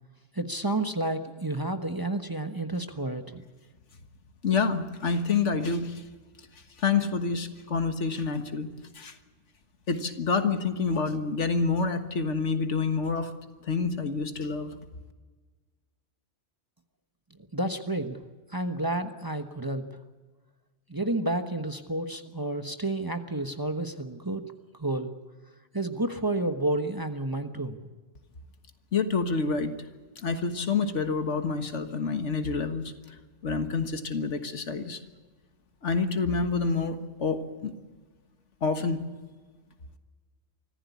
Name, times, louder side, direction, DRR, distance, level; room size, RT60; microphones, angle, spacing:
voice 1, 0.3-3.4 17.4-18.2 18.5-19.8 20.9-24.4 24.8-25.1 25.7-27.8, right 2 dB, 20° right, 6 dB, 1.2 m, -30 dB
voice 2, 4.4-6.0 6.8-8.7 9.0-9.2 9.9-13.3 13.7-14.8 28.9-29.7 30.2-32.9 33.4-35.0 35.8-37.7 38.6-39.0, left 4 dB, 75° left, 8 dB, 1.8 m, -27 dB
24.5 x 15.0 x 8.4 m, 1.4 s
omnidirectional pair, 1.2 m